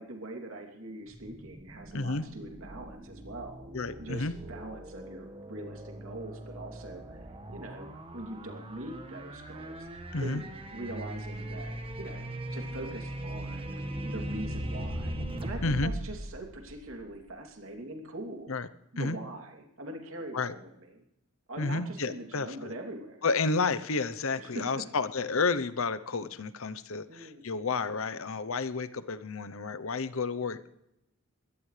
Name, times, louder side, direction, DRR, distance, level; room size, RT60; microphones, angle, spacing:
voice 1, 0.0-3.7 4.0-10.4 10.7-18.5 18.9-21.0 21.5-23.2 24.4-24.8 27.1-27.4, right 1 dB, 65° right, 2 dB, 3.0 m, -43 dB
sound 1, 1.1-17.3, right 1 dB, 25° right, 1.6 m, -40 dB
voice 2, 1.9-2.2 3.7-4.3 10.1-10.4 15.6-15.9 18.5-18.7 19.0-19.2 20.3-20.5 21.6-22.7 23.2-30.7, left 4 dB, 65° left, 14 dB, 0.8 m, -31 dB
22.5 x 17.0 x 3.3 m, 0.84 s
head